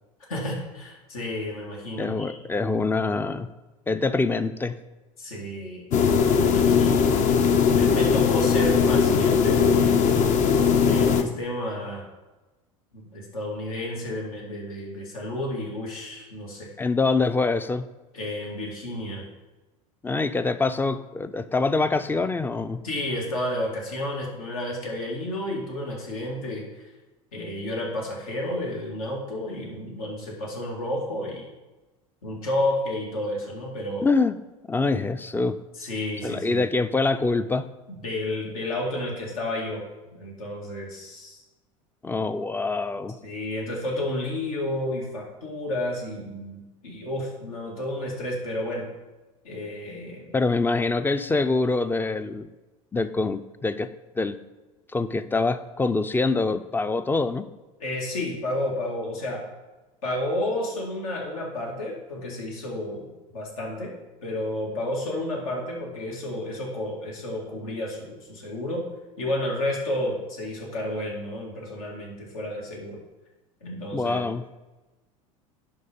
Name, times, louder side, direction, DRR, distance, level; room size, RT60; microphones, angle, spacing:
voice 1, 0.3-2.4 5.2-5.8 6.3-10.0 10.7-12.1 12.9-16.7 18.1-19.2 22.8-26.6 27.3-31.5 32.2-34.1 35.8-36.6 38.0-39.8 40.1-41.4 43.2-48.8 49.4-50.3 57.8-59.4 60.0-63.9 64.2-68.8 69.2-73.0 73.6-74.3, left 1 dB, 75° left, -2 dB, 2.3 m, -31 dB
voice 2, 2.0-3.5 3.9-4.8 6.9-7.0 16.8-17.8 20.0-22.8 34.0-34.3 34.7-35.6 36.2-37.7 42.0-43.2 50.3-52.5 52.9-53.9 54.2-54.4 54.9-57.5 73.9-74.4, left 3 dB, 10° left, 12 dB, 0.5 m, -25 dB
sound 1, 5.9-11.2, left 6 dB, 45° left, 0.8 m, -20 dB
10.5 x 3.9 x 5.2 m, 1.1 s
hypercardioid pair, 80°, 18 cm